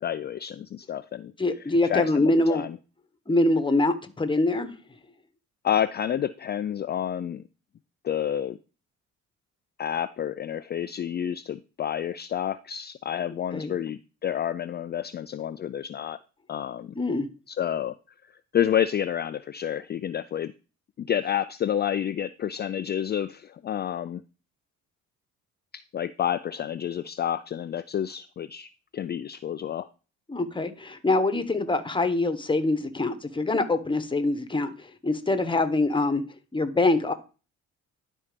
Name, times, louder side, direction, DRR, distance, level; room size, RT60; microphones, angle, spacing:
voice 1, 0.0-1.3 1.8-2.8 5.6-7.4 8.0-8.6 9.8-16.2 16.5-16.9 17.5-18.0 18.3-20.5 21.0-24.2 25.7-29.9, left 9 dB, 35° left, 12 dB, 0.4 m, -29 dB
voice 2, 1.4-2.6 3.3-4.7 13.5-13.7 17.0-17.3 30.3-36.2 36.5-37.1, left 2 dB, 15° left, 9 dB, 1.2 m, -24 dB
11.0 x 4.2 x 5.1 m, 0.35 s
cardioid pair, 90°, 30 cm